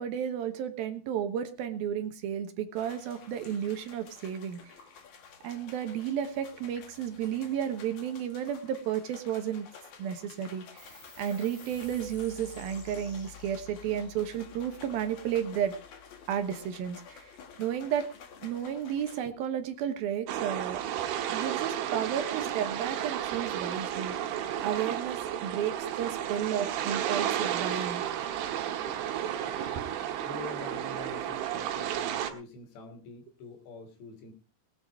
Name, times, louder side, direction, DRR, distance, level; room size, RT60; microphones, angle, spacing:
voice 1, 0.0-4.6 5.4-9.7 10.0-10.8 11.2-15.7 16.3-17.3 17.6-18.1 18.4-20.8 21.3-28.0 29.6-30.0, right 9 dB, 70° right, 8 dB, 2.6 m, -33 dB
sound 1, 2.8-19.2, left 6 dB, 50° left, 2.6 m, -52 dB
sound 2, 10.8-17.7, left 4 dB, 20° left, 2.2 m, -52 dB
sound 3, 20.3-32.3, right 10 dB, 90° right, 3.9 m, -32 dB
voice 2, 29.3-34.3, left 3 dB, 70° left, 6 dB, 5.1 m, -46 dB
19.0 x 9.2 x 4.6 m, 0.33 s
omnidirectional pair, 5.3 m